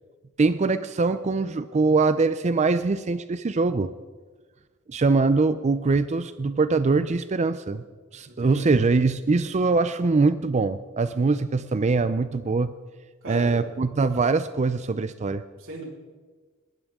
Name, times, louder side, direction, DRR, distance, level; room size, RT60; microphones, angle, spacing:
voice 1, 0.4-3.9 4.9-7.8 8.1-12.7 13.3-15.4, right 3 dB, 30° right, 13 dB, 0.4 m, -23 dB
voice 2, 8.3-8.8 13.2-13.7 15.5-15.8, right 1 dB, 65° right, -2 dB, 4.4 m, -37 dB
21.5 x 18.5 x 3.6 m, 1.4 s
head